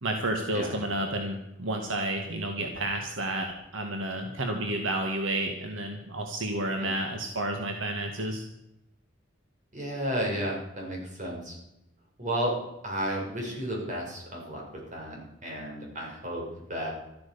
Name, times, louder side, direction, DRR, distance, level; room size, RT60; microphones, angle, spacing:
voice 1, 0.0-8.4, right 1 dB, 80° right, 4 dB, 1.9 m, -31 dB
voice 2, 9.7-11.6 12.2-16.9, right 1 dB, 40° right, -1 dB, 6.4 m, -33 dB
13.5 x 13.0 x 7.0 m, 0.88 s
head